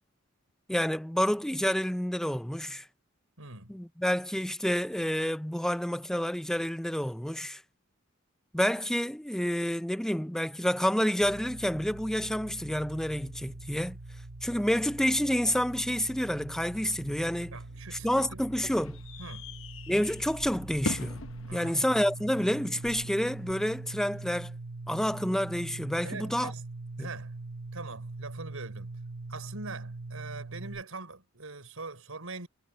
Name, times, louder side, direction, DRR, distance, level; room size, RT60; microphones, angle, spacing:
voice 1, 0.7-2.9 3.7-7.6 8.5-14.0 14.4-17.5 18.0-19.0 19.9-21.2 21.5-24.5 24.9-26.5 27.0-27.1, equal, ahead, 0.5 m, -29 dB
voice 2, 3.4-3.7 17.5-18.4 19.2-19.5 21.5-22.0 26.0-26.6 27.0-27.4 27.7-28.9 29.3-32.5, right 3 dB, 85° right, 4.7 m, -42 dB
sound 1, 11.2-30.8, right 2 dB, 50° right, 1.4 m, -42 dB
sound 2, 17.5-23.5, left 2 dB, 65° left, 1.0 m, -42 dB
head